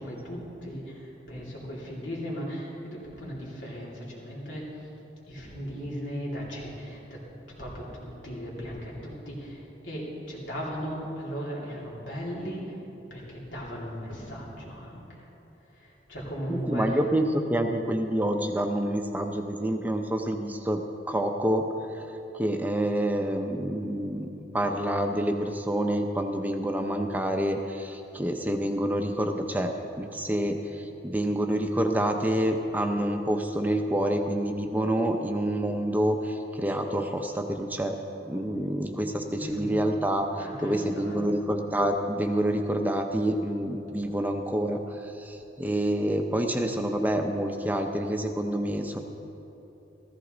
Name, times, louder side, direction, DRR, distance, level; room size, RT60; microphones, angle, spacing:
voice 1, 0.0-4.9 5.3-7.2 7.5-12.8 13.1-15.3 15.7-17.0 39.3-39.7 40.4-41.3, equal, 85° left, -5 dB, 3.1 m, -37 dB
voice 2, 16.5-20.8 21.1-21.7 21.9-22.0 22.3-37.9 38.3-40.3 40.6-49.0, right 1 dB, 10° right, 4 dB, 0.5 m, -27 dB
14.5 x 14.5 x 3.9 m, 3.0 s
head